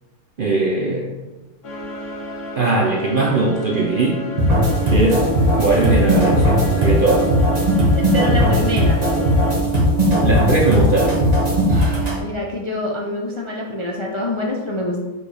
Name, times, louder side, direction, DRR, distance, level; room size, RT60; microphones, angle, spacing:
voice 1, 0.4-1.1 2.6-4.3 4.9-5.3 5.6-7.3 10.2-11.2, right 2 dB, 50° right, 0 dB, 0.6 m, -19 dB
sound 1, 1.6-9.6, right 1 dB, 55° left, 1.5 m, -32 dB
sound 2, 4.4-12.2, equal, 25° right, 1.5 m, -17 dB
voice 2, 8.0-9.0 12.2-15.0, left 1 dB, 35° left, -2 dB, 0.5 m, -25 dB
5.2 x 4.7 x 4.9 m, 1.1 s
omnidirectional pair, 1.6 m